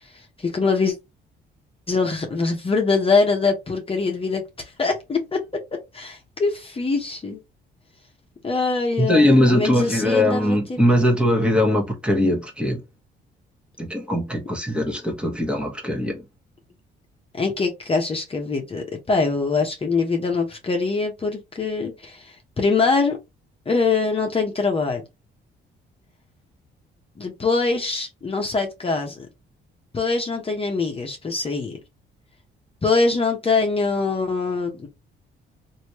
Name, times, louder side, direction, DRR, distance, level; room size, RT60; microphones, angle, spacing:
voice 1, 0.1-0.9 1.9-7.4 8.4-11.0 17.3-23.2 23.7-25.0 27.2-29.3 29.9-31.8 32.8-34.9, left 4 dB, 30° left, 0.9 m, -23 dB
voice 2, 9.0-12.8 13.8-16.2, left 1 dB, 5° right, 1.1 m, -20 dB
3.1 x 2.7 x 3.0 m
cardioid pair, 90°, 20 cm